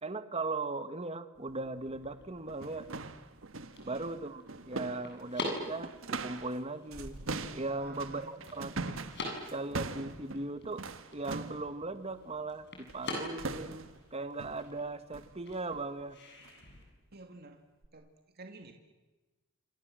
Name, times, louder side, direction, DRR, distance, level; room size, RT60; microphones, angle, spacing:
voice 1, 0.0-2.9 3.8-7.2 7.5-8.9 9.5-10.9 11.1-16.2, right 3 dB, 30° right, 10 dB, 1.6 m, -38 dB
sound 1, 1.3-16.8, left 2 dB, 55° left, 7.9 m, -46 dB
sound 2, 1.8-1.9 2.4-6.6 6.9-11.7 12.9-13.1 13.4-14.0 14.4-14.7 15.1-15.4 15.7-15.9 16.4-16.6 17.1-17.2 17.8-17.9, right 3 dB, 70° right, 1.5 m, -42 dB
sound 3, 2.6-5.4 5.7-5.8 6.1-6.2 6.5-6.6 6.9-8.6, right 1 dB, 85° right, 2.2 m, -54 dB
voice 2, 3.8-4.2 7.8-8.5 17.1-17.6 17.9-18.7, right 3 dB, 50° right, 4 dB, 2.3 m, -51 dB
27.5 x 27.5 x 7.7 m, 1.1 s
head